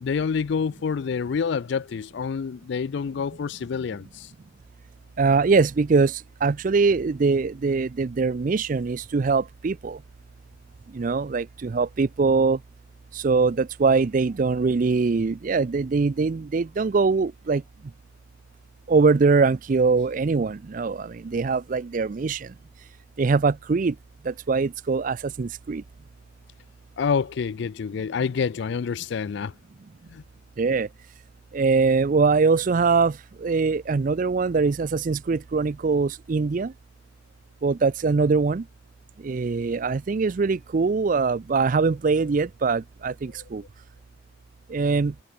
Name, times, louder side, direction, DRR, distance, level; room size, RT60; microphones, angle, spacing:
voice 1, 0.0-4.3 27.0-29.5 30.1-30.2, left 6 dB, 55° left, 0.3 m, -27 dB
voice 2, 5.2-10.0 10.9-12.6 13.2-17.6 18.9-22.5 23.2-23.9 24.3-25.8 30.6-30.9 31.5-36.7 37.6-38.6 39.2-43.6 44.7-45.1, right 4 dB, 40° right, 0.4 m, -22 dB
head